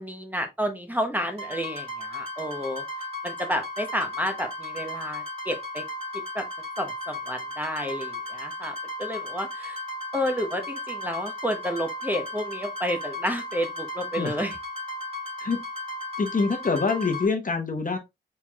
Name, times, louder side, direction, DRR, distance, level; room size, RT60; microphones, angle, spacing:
voice 1, 0.0-2.8 3.2-5.8 6.3-6.4 6.8-9.8 10.1-14.6, equal, 10° right, 0.8 m, -30 dB
sound 1, 1.4-17.3, left 1 dB, 30° right, 2.0 m, -35 dB
voice 2, 16.2-18.0, left 4 dB, 40° left, 1.0 m, -25 dB
4.3 x 4.3 x 2.3 m
wide cardioid pair, 100°, 20 cm